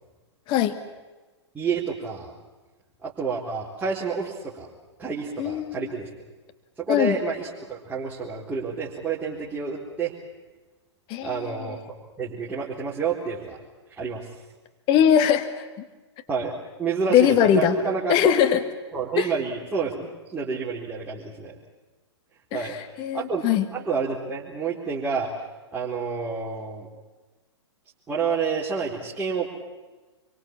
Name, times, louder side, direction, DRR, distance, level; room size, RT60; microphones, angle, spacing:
voice 1, 1.5-2.3 3.0-4.7 5.0-6.1 6.8-10.1 11.2-13.6 13.9-14.3 16.3-18.3 18.9-21.6 22.5-22.8 23.1-23.4 23.7-25.5 25.7-26.9 28.1-29.5, right 5 dB, 10° right, -6 dB, 4.0 m, -29 dB
voice 2, 5.4-5.9 6.9-7.2 11.1-11.5 14.9-15.6 17.1-17.8 18.1-18.6 19.2-19.3 22.5-23.7, left 9 dB, 35° left, 9 dB, 1.9 m, -21 dB
28.0 x 24.0 x 7.4 m, 1.2 s
figure-of-eight pair, 110°, 15 cm